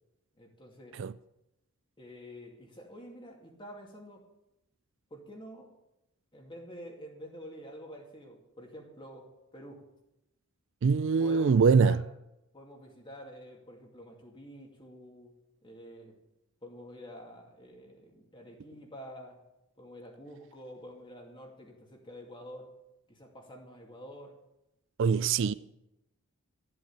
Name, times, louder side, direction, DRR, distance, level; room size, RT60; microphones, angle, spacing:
voice 1, 0.4-1.0 2.0-4.2 5.1-5.7 6.3-9.8 11.2-12.0 12.5-15.3 15.6-16.1 16.6-19.4 19.8-22.7 23.1-24.4 25.0-25.2, equal, 20° left, 2.5 m, -48 dB
voice 2, 10.8-12.0 25.0-25.5, right 5 dB, 55° right, 0.4 m, -23 dB
13.5 x 8.0 x 8.3 m
head